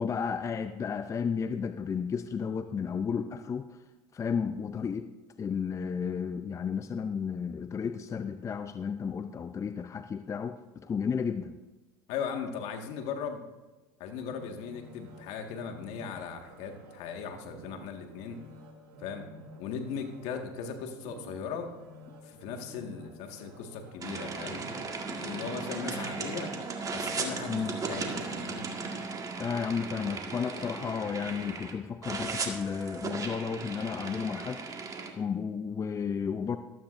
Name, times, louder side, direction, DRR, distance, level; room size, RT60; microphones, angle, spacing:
voice 1, 0.0-3.8 4.1-5.1 5.4-11.6 27.5-27.7 29.4-34.6 34.9-36.6, left 6 dB, 25° left, 9 dB, 0.6 m, -33 dB
voice 2, 12.1-13.4 14.0-18.4 19.0-19.3 19.6-21.7 22.2-24.6 25.1-26.5 26.9-28.7, left 6 dB, 65° left, 4 dB, 1.8 m, -38 dB
sound 1, 14.2-29.2 29.7-29.8, right 1 dB, 75° right, 2.3 m, -51 dB
sound 2, 24.0-31.7 32.0-35.1, right 4 dB, 30° right, 1.8 m, -36 dB
14.5 x 12.5 x 2.6 m, 1.1 s
hypercardioid pair, 90°, 12 cm